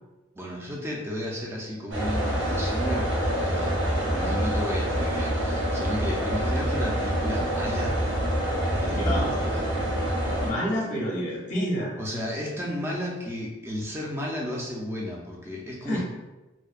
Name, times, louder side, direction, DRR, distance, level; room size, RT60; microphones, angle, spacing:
voice 1, 0.3-3.1 3.4-7.9 8.7-9.6 12.0-16.0, equal, 15° right, -3 dB, 0.3 m, -33 dB
sound 1, 1.9-10.5, equal, 85° right, 0.7 m, -26 dB
voice 2, 8.8-9.3 10.4-11.9 15.8-16.0, equal, 40° left, -4 dB, 0.5 m, -28 dB
2.5 x 2.1 x 2.3 m, 1.1 s
head